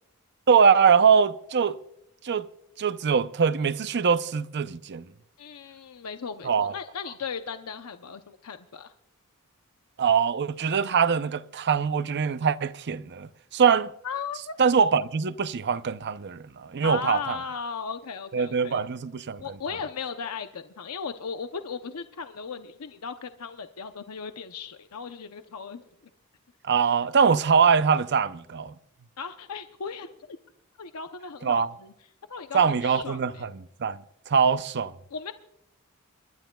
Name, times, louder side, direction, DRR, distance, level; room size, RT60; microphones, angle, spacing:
voice 1, 0.5-1.8 2.2-2.5 2.8-5.0 6.4-6.7 10.0-13.9 14.6-17.4 18.3-19.4 26.6-28.7 31.4-31.7 32.5-33.5 33.8-34.0 34.3-34.9, right 6 dB, 50° right, 0.6 m, -23 dB
voice 2, 5.4-8.9 14.0-14.6 16.8-18.8 19.4-25.8 29.2-30.1 30.8-31.9 32.3-33.4 35.1-35.3, left 6 dB, 80° left, 0.7 m, -37 dB
29.5 x 12.0 x 2.3 m
head